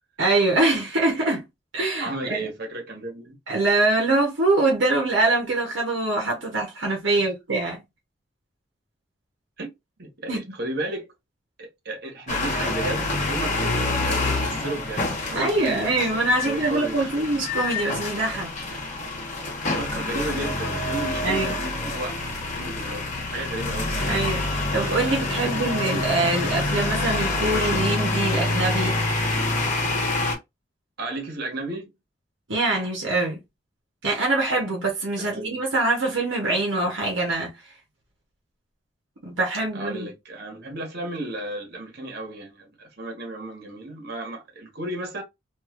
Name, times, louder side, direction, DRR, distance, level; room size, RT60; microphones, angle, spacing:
voice 1, 0.2-1.4 1.7-2.4 3.5-7.8 10.3-10.4 15.3-18.5 21.2-21.6 24.1-29.0 32.5-33.4 34.0-37.5 39.2-40.1, right 2 dB, 80° right, 1.0 m, -24 dB
voice 2, 2.0-3.4 7.1-7.3 9.6-9.7 10.0-11.1 11.6-17.5 19.6-22.2 22.5-24.2 25.3-25.7 31.0-32.0 35.2-35.6 39.7-45.2, right 2 dB, 55° right, 1.3 m, -34 dB
sound 1, 12.3-30.4, left 2 dB, 40° left, 1.0 m, -27 dB
3.2 x 2.6 x 2.5 m
head